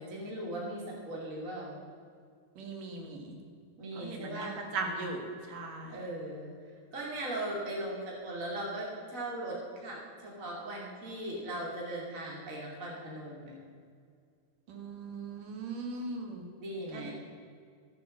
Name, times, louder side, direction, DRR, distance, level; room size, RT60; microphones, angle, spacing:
voice 1, 0.0-1.8 3.8-4.6 5.9-6.5 6.9-13.5 16.6-17.1, right 1 dB, 25° right, -3 dB, 2.3 m, -38 dB
voice 2, 2.6-3.3 3.9-5.2 5.5-5.9 14.7-16.5 16.9-17.1, right 3 dB, 65° right, 3 dB, 3.3 m, -39 dB
14.5 x 8.3 x 7.5 m, 2.2 s
omnidirectional pair, 4.4 m